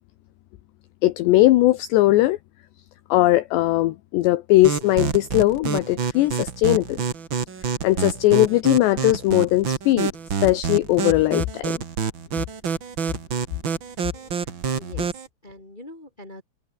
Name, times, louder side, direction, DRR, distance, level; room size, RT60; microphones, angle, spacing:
voice 1, 1.0-2.4 3.1-7.0 7.8-10.1 10.4-11.8, left 17 dB, 75° left, 2.7 m, -19 dB
sound 1, 4.6-15.3, right 6 dB, 55° right, 1.3 m, -27 dB
voice 2, 14.1-16.4, left 1 dB, 35° left, 0.7 m, -44 dB
open air
omnidirectional pair, 5.9 m